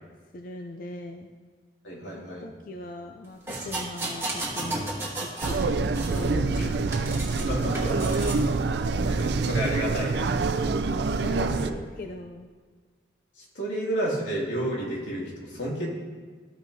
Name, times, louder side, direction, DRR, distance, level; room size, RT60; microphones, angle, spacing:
voice 1, 0.3-1.3 2.1-4.9 5.2-7.1 11.2-12.5, left 2 dB, 50° left, 4 dB, 0.4 m, -40 dB
voice 2, 1.8-2.5 7.4-8.3 9.0-10.5 11.6-11.8 13.5-15.9, right 1 dB, 90° left, -4 dB, 2.5 m, -31 dB
sound 1, 3.5-5.6 5.9-7.4 7.7-8.4 9.1-9.2, right 2 dB, 15° right, 1.3 m, -34 dB
sound 2, 5.4-11.7, right 3 dB, 65° right, 0.4 m, -26 dB
14.0 x 5.8 x 2.8 m, 1.5 s
head